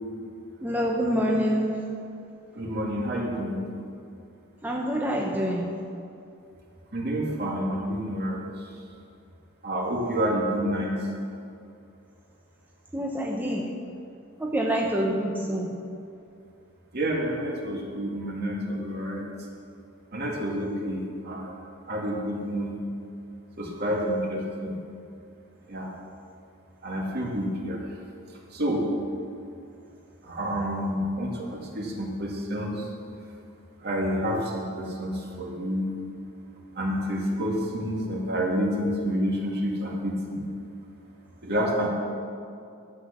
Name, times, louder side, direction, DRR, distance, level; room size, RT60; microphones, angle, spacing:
voice 1, 0.6-1.9 4.6-5.7 12.9-13.7 14.4-15.7, equal, 10° right, -1 dB, 0.8 m, -26 dB
voice 2, 2.6-3.6 6.9-8.4 9.6-11.0 16.9-19.2 20.1-21.6 21.9-22.8 23.6-24.8 25.7-25.9 26.8-27.8 28.5-28.8 30.2-32.9 33.8-35.9 36.8-40.5 41.4-41.9, equal, 50° right, -2 dB, 2.2 m, -29 dB
12.0 x 8.4 x 6.8 m, 2.5 s
head